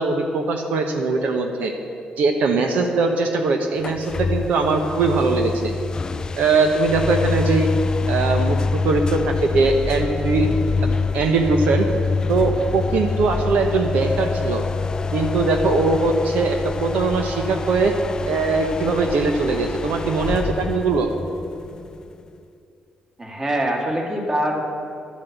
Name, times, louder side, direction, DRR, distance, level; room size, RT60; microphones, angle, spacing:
voice 1, 0.0-1.7 2.2-5.7 6.4-7.7 8.1-8.6 8.8-10.5 10.8-11.9 12.3-14.7 15.1-17.9 18.3-21.1, right 3 dB, 75° right, 4 dB, 1.0 m, -21 dB
sound 1, 3.8-22.3, left 4 dB, 30° left, 0.3 m, -26 dB
voice 2, 23.2-24.6, right 1 dB, 25° right, 0 dB, 2.0 m, -23 dB
12.0 x 7.5 x 8.2 m, 2.6 s
cardioid pair, 115°, 3 cm